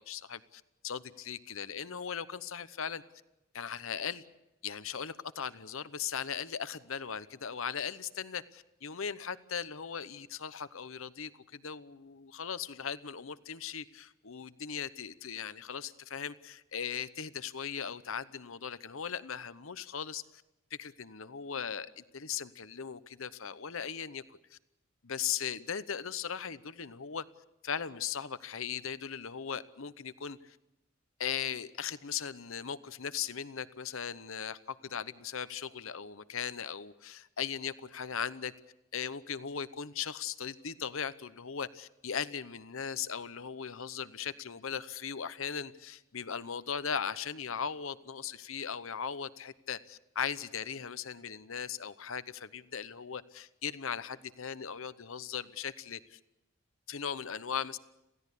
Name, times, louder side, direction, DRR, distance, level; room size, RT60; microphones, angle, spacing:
voice 1, 0.0-3.0 3.5-4.2 4.6-20.4 20.8-24.6 25.0-27.2 27.6-30.6 31.2-38.5 38.9-56.2 56.9-57.8, left 7 dB, 65° left, 14 dB, 0.9 m, -38 dB
27.5 x 16.5 x 8.4 m, 0.95 s
head